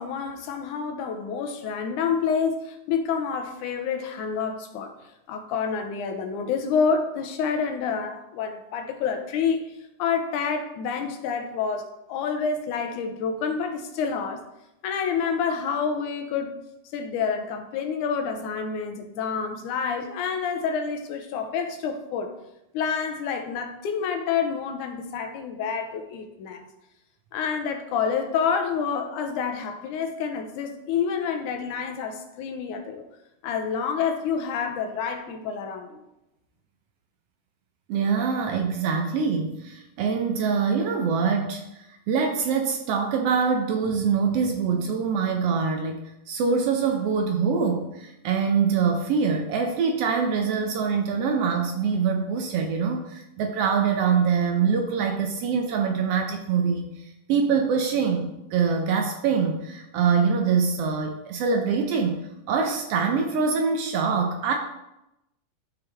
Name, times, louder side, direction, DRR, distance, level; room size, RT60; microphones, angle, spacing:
voice 1, 0.0-4.9 5.3-9.6 10.0-14.4 14.8-16.6 16.9-22.3 22.7-26.6 27.3-33.0 33.4-36.0, left 6 dB, 80° left, 5 dB, 2.2 m, -28 dB
voice 2, 37.9-64.5, right 5 dB, 85° right, 4 dB, 1.3 m, -24 dB
12.5 x 4.8 x 3.3 m, 0.89 s
omnidirectional pair, 3.6 m